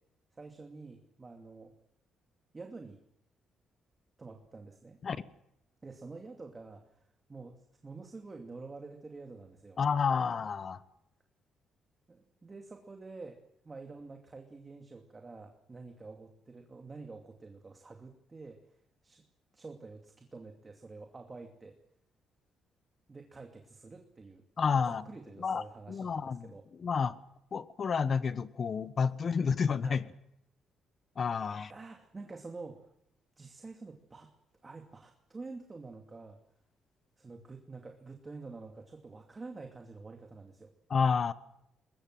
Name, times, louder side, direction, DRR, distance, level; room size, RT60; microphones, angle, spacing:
voice 1, 0.3-1.7 2.5-3.0 4.2-5.0 5.8-6.9 7.3-9.8 12.1-13.4 13.6-18.6 19.0-19.2 19.5-21.8 23.1-24.4 24.7-26.6 29.8-30.0 31.7-32.9 33.4-34.3 34.6-36.4 37.2-40.7, right 3 dB, 25° right, 3 dB, 2.6 m, -48 dB
voice 2, 9.8-10.8 24.6-25.0 25.4-27.1 27.5-30.0 31.1-31.7 40.9-41.3, left 6 dB, 45° left, 14 dB, 1.3 m, -30 dB
22.5 x 21.0 x 7.9 m, 0.79 s
cardioid pair, 90°, 0 cm